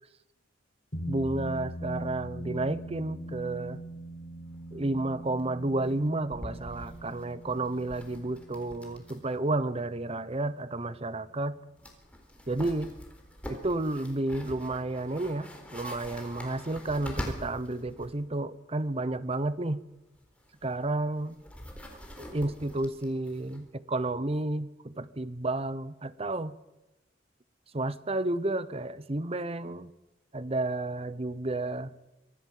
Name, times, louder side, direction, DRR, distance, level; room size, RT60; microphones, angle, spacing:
sound 1, 0.9-11.6, right 1 dB, 45° left, 4.4 m, -42 dB
voice 1, 1.1-3.8 4.7-11.6 12.5-12.9 13.5-19.8 20.6-21.4 22.2-26.5 27.7-29.9 30.3-31.9, right 2 dB, 35° right, 15 dB, 0.9 m, -31 dB
sound 2, 4.5-4.6 4.8-4.9 5.2-5.4 5.8-9.4 9.6-9.7 11.4-11.5 11.8-18.2 20.0-23.7, equal, 5° left, 4.1 m, -44 dB
25.0 x 17.0 x 7.7 m, 0.99 s
head